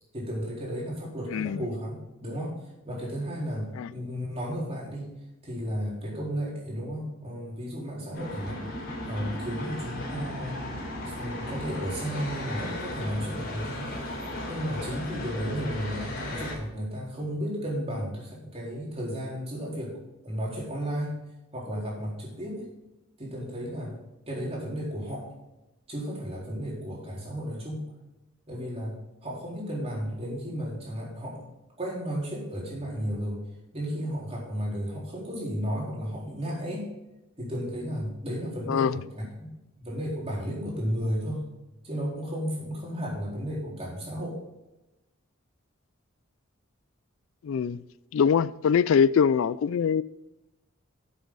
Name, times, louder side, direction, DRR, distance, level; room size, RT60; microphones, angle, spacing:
voice 1, 0.1-2.6 2.8-5.1 5.4-8.6 9.0-10.6 11.0-13.9 14.4-20.0 20.2-21.1 21.5-22.7 23.2-24.0 24.3-25.3 25.9-27.9 28.5-31.5 31.8-33.4 33.7-36.9 37.4-39.5 39.8-41.5 41.8-44.4, equal, 30° right, 4.0 m, -33 dB
voice 2, 1.3-1.7 3.8-3.9 38.7-39.0 47.4-47.8 48.1-50.0, left 7 dB, 75° left, 0.3 m, -23 dB
sound 1, 8.1-16.5, left 1 dB, 55° left, 4.1 m, -36 dB
10.5 x 7.9 x 4.0 m
head